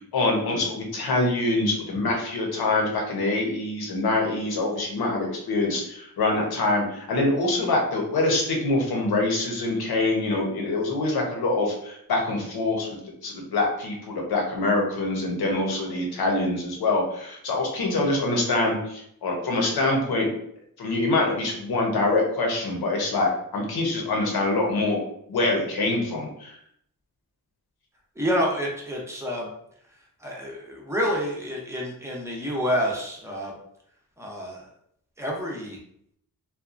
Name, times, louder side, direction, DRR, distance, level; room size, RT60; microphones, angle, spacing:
voice 1, 0.1-13.0 13.2-20.3 20.8-25.0 25.3-26.6, left 2 dB, 90° left, 0 dB, 0.8 m, -25 dB
voice 2, 28.2-29.5 30.2-33.5 34.2-34.7 35.2-35.8, equal, 10° right, -2 dB, 0.5 m, -28 dB
2.8 x 2.2 x 2.4 m, 0.71 s
wide cardioid pair, 125°, 36 cm